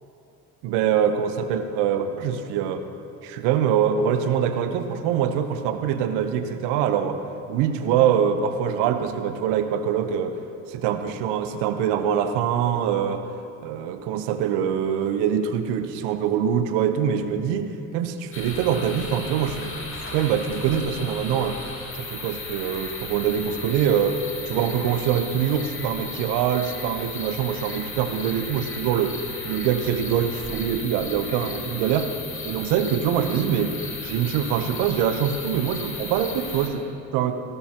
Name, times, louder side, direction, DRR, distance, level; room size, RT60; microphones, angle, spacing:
voice 1, 0.6-2.8 3.2-7.2 7.5-10.3 10.7-13.2 13.6-19.7 20.1-21.6 22.0-24.2 24.4-29.2 29.4-32.1 32.4-33.8 34.0-37.3, right 8 dB, 70° right, 8 dB, 1.1 m, -24 dB
sound 1, 18.3-36.7, left 3 dB, 30° left, 2.5 m, -35 dB
18.0 x 12.5 x 3.0 m, 2.7 s
hypercardioid pair, 70°, 43 cm